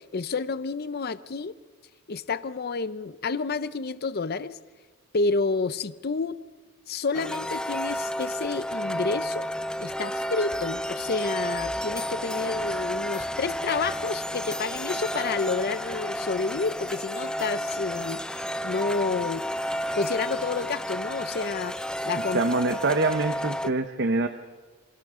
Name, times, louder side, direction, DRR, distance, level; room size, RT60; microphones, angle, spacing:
voice 1, 0.0-1.5 2.1-4.6 5.1-6.4 6.9-9.5 9.8-18.3 18.6-19.4 19.9-21.7 22.1-22.4, left 4 dB, 45° left, 14 dB, 0.6 m, -29 dB
sound 1, 7.1-23.7, equal, 5° left, 0.6 m, -31 dB
voice 2, 22.3-24.3, right 3 dB, 50° right, 8 dB, 0.8 m, -25 dB
28.5 x 26.0 x 3.7 m, 1.5 s
head